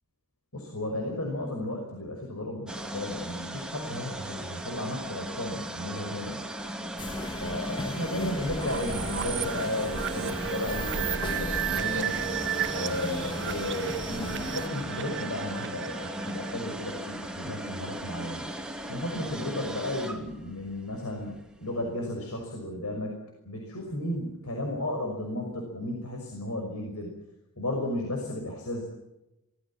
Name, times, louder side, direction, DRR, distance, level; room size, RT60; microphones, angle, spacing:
voice 1, 0.5-6.4 7.4-12.1 12.7-18.5 18.9-21.3 21.6-23.1 23.4-27.1 27.6-28.8, left 1 dB, 70° left, 1 dB, 5.9 m, -34 dB
sound 1, 2.7-21.8, equal, 5° right, 3.0 m, -37 dB
sound 2, 7.0-14.7, left 1 dB, 20° left, 2.1 m, -37 dB
sound 3, 8.6-17.2, right 10 dB, 55° right, 0.9 m, -34 dB
25.0 x 19.5 x 7.4 m, 0.92 s
head